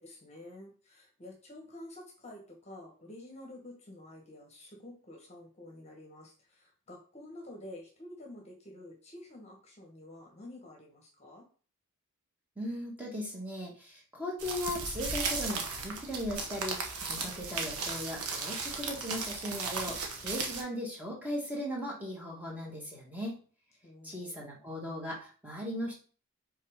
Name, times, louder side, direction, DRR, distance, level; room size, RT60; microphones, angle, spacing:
voice 1, 0.0-11.4 23.8-24.5, left 1 dB, 30° left, 0 dB, 1.4 m, -49 dB
voice 2, 12.6-23.4 24.0-26.0, left 1 dB, 5° right, -3 dB, 2.0 m, -38 dB
sound 1, 14.4-20.6, right 4 dB, 85° right, 1.3 m, -36 dB
5.6 x 3.9 x 5.0 m, 0.40 s
head